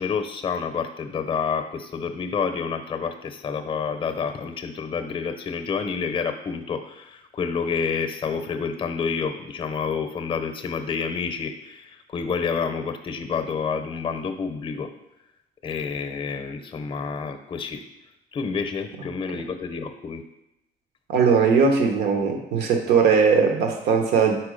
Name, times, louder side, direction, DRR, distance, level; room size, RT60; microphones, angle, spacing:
voice 1, 0.0-14.9 15.6-17.8 18.3-20.2, left 5 dB, 30° left, 7 dB, 0.6 m, -29 dB
voice 2, 21.1-24.4, right 5 dB, 80° right, 4 dB, 1.0 m, -19 dB
4.7 x 4.5 x 5.0 m, 0.87 s
cardioid pair, 110°, 17 cm